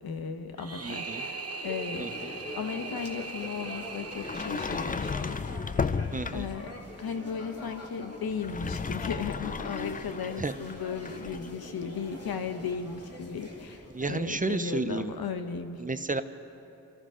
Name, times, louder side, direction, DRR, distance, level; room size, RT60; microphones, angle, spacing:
voice 1, 0.0-5.4 6.3-15.8, left 6 dB, 85° left, 6 dB, 1.0 m, -36 dB
sound 1, 0.6-5.7, right 3 dB, 45° right, 1.0 m, -40 dB
voice 2, 0.8-1.2 2.0-2.1 6.1-6.5 10.4-10.5 13.9-15.1 15.8-16.2, right 3 dB, 25° right, 11 dB, 0.6 m, -31 dB
sound 2, 1.6-14.2, left 1 dB, 40° left, 2.6 m, -44 dB
Sliding door, 4.2-6.7 8.3-11.5, left 5 dB, 25° left, 0.4 m, -34 dB
26.5 x 13.5 x 3.8 m, 2.8 s
cardioid pair, 60°, 36 cm